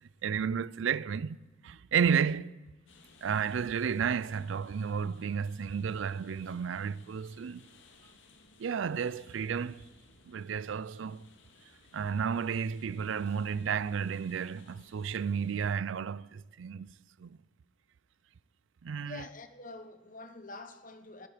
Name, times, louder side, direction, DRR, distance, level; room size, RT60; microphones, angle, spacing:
voice 1, 0.0-1.4 1.6-2.6 3.2-7.7 8.6-9.8 10.3-11.3 11.9-16.9 17.2-17.4 18.8-19.2, right 7 dB, 80° right, 0.4 m, -32 dB
sound 1, 2.9-15.8, left 3 dB, 80° left, 2.0 m, -61 dB
voice 2, 19.0-21.3, left 3 dB, 45° left, 1.1 m, -46 dB
20.0 x 12.5 x 5.0 m
head